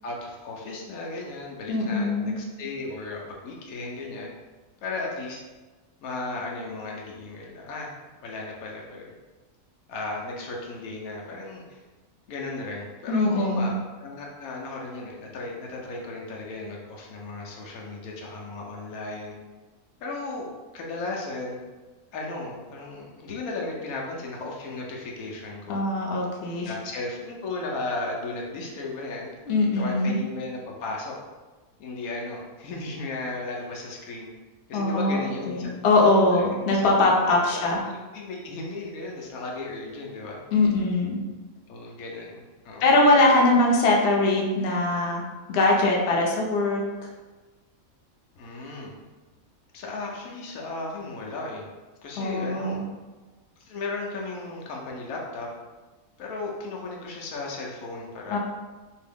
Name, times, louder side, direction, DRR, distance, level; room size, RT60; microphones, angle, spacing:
voice 1, 0.0-4.3 4.8-5.4 6.0-7.9 8.2-9.1 9.9-11.8 12.3-19.3 20.0-20.5 20.7-21.6 22.1-25.8 26.6-29.3 29.7-31.1 31.8-34.3 34.7-35.8 36.4-40.4 41.7-43.0 48.4-48.9 49.7-51.7 52.0-52.8 53.6-55.5 56.2-58.4, left 3 dB, 85° left, -2 dB, 1.1 m, -35 dB
voice 2, 1.7-2.3 13.1-13.7 25.7-26.7 29.5-30.2 34.7-35.2 35.5-37.8 40.5-41.2 42.8-45.2 45.5-46.8 52.2-52.8 58.3-58.4, left 2 dB, 60° left, -2 dB, 0.8 m, -22 dB
2.9 x 2.7 x 3.4 m, 1.2 s
omnidirectional pair, 1.5 m